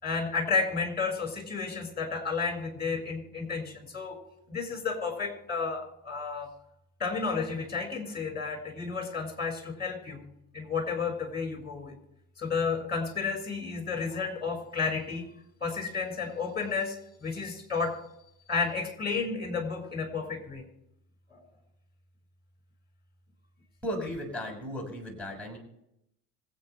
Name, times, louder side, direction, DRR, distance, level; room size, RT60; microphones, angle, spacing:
voice 1, 0.0-4.2 4.5-6.5 7.0-10.2 10.5-11.9 12.4-15.3 15.6-18.0 18.5-20.6 21.3-21.4, left 4 dB, 20° left, 4 dB, 6.0 m, -32 dB
voice 2, 23.8-25.6, equal, 5° left, 0 dB, 6.5 m, -35 dB
26.0 x 9.1 x 3.5 m, 0.79 s
hypercardioid pair, 70°, 46 cm